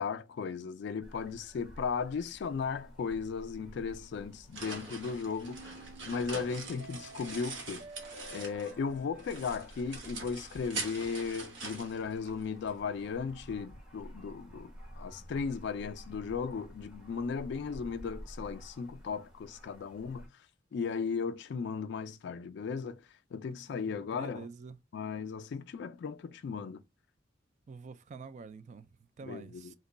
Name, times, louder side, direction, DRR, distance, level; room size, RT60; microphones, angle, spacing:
voice 1, 0.0-5.7 6.1-7.8 8.3-20.3 20.7-23.0 23.3-24.5 24.9-26.8 29.2-29.7, left 5 dB, 60° left, 0.3 m, -36 dB
sound 1, 1.0-20.3, equal, 5° right, 0.8 m, -52 dB
sound 2, 4.1-8.8 9.2-12.7, right 3 dB, 65° right, 0.9 m, -43 dB
sound 3, 5.5-10.5, right 2 dB, 90° right, 0.5 m, -52 dB
voice 2, 23.7-24.8 27.7-29.7, right 5 dB, 40° right, 0.3 m, -47 dB
2.9 x 2.2 x 3.8 m
head